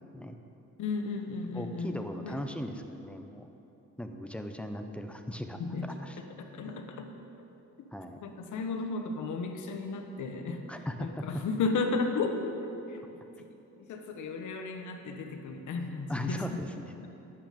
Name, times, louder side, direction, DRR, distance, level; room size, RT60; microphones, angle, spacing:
voice 1, 0.8-2.0 2.2-2.4 5.6-6.0 6.5-7.1 8.2-10.6 11.0-13.2 13.8-16.6 17.0-17.1, left 4 dB, 75° left, 5 dB, 1.2 m, -34 dB
voice 2, 1.5-3.5 4.0-5.6 6.0-6.2 7.9-8.2 10.7-11.2 16.1-16.8, equal, 5° left, 6 dB, 0.9 m, -38 dB
11.5 x 9.1 x 5.2 m, 3.0 s
cardioid pair, 90°, 30 cm